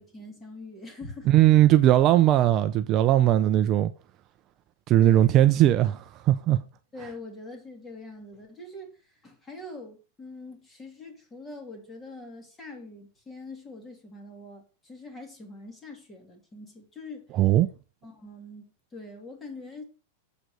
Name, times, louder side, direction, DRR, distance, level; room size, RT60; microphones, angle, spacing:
voice 1, 0.0-1.3 5.0-5.4 6.9-17.2 18.0-19.8, left 2 dB, 15° left, 2.7 m, -43 dB
voice 2, 1.3-3.9 4.9-6.6 17.3-17.7, right 13 dB, 35° right, 0.6 m, -19 dB
7.5 x 5.1 x 6.4 m
supercardioid pair, 145°, 0 cm